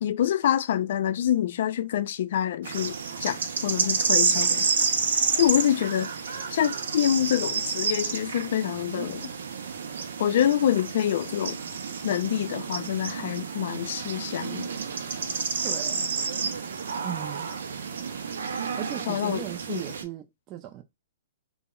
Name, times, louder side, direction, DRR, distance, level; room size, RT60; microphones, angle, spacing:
voice 1, 0.0-4.7 5.1-6.1 6.5-9.3 10.2-11.6 12.0-14.7 19.1-19.4 19.7-19.8, left 10 dB, 60° left, 0.3 m, -26 dB
sound 1, 2.6-20.0, right 5 dB, 80° right, 0.5 m, -30 dB
voice 2, 15.6-16.1 17.0-17.5 18.8-20.8, right 11 dB, 25° right, 0.3 m, -37 dB
2.1 x 2.0 x 3.6 m
hypercardioid pair, 155°, 0 cm